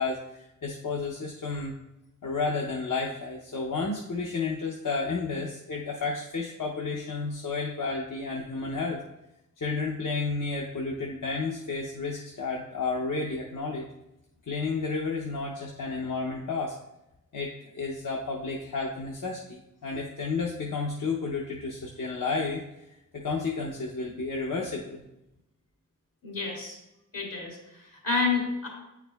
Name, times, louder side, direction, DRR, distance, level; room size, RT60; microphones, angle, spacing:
voice 1, 0.0-1.7 2.2-9.0 9.6-13.9 14.5-16.8 17.3-22.6 23.1-25.0, left 4 dB, 70° left, -1 dB, 0.7 m, -31 dB
voice 2, 26.2-26.8 27.1-28.7, left 4 dB, 90° left, -3 dB, 2.3 m, -29 dB
8.9 x 4.7 x 2.3 m, 0.90 s
cardioid pair, 40°, 32 cm